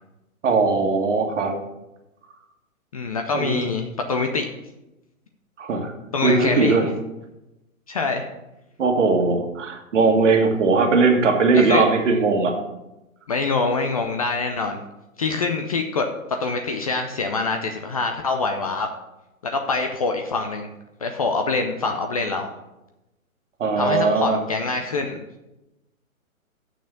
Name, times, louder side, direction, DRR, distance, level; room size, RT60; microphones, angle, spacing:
voice 1, 0.4-1.6 3.3-3.6 5.6-5.9 6.2-6.9 8.8-12.6 23.6-24.4, right 4 dB, 55° right, 4 dB, 1.7 m, -19 dB
voice 2, 2.9-4.5 6.1-6.8 7.9-8.3 11.5-11.8 13.3-14.8 15.2-16.1 16.4-18.9 19.4-20.7 21.0-22.5 23.8-25.2, left 3 dB, 25° left, 5 dB, 0.5 m, -24 dB
6.7 x 6.1 x 6.9 m, 0.96 s
hypercardioid pair, 135°, 43 cm